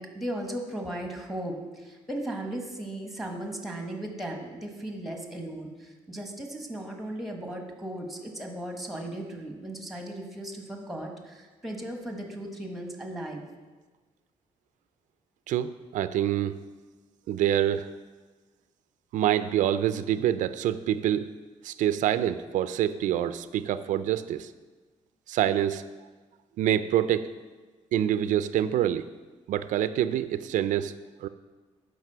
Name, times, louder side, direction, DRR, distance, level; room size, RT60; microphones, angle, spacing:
voice 1, 0.0-13.4, right 1 dB, ahead, 2 dB, 1.2 m, -36 dB
voice 2, 15.5-16.6 17.3-17.9 19.1-21.3 21.6-24.5 25.3-25.8 26.6-27.3 27.9-29.1 29.5-30.9 31.2-31.3, right 11 dB, 80° right, 13 dB, 0.4 m, -26 dB
9.4 x 5.2 x 6.7 m, 1.3 s
cardioid pair, 150°, 13 cm